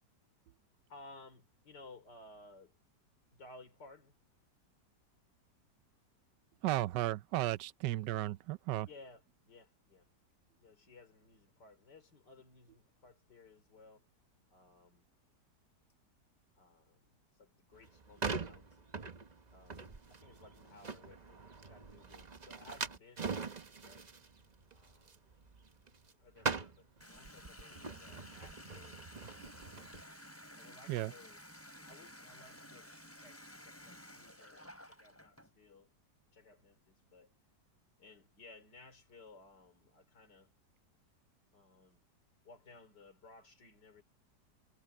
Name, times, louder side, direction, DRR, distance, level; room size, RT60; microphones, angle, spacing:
voice 1, 0.9-2.8 3.3-4.2 8.9-10.1 10.6-14.1 14.5-15.1 16.6-17.0 17.3-18.9 19.5-23.3 23.8-24.1 24.7-25.2 26.2-29.7 30.6-31.4 31.8-35.9 36.3-37.3 38.0-40.5 41.5-42.0 42.4-44.0, left 3 dB, 80° left, 4.5 m, -58 dB
voice 2, 6.6-8.9 30.9-31.1, right 15 dB, 85° right, 1.2 m, -34 dB
sound 1, 17.7-26.1 26.4-30.0, right 4 dB, 30° right, 0.9 m, -42 dB
Water tap faucet, 27.0-35.5, left 1 dB, 10° left, 3.4 m, -54 dB
omnidirectional pair, 1.8 m